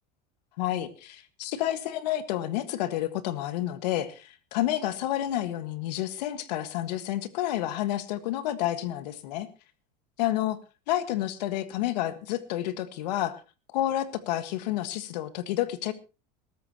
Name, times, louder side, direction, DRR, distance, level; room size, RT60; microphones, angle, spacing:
voice 1, 0.6-9.5 10.2-10.6 10.9-13.4 13.7-15.9, left 13 dB, 85° left, 12 dB, 1.6 m, -30 dB
22.0 x 13.5 x 3.0 m, 0.32 s
supercardioid pair, 160°, 21 cm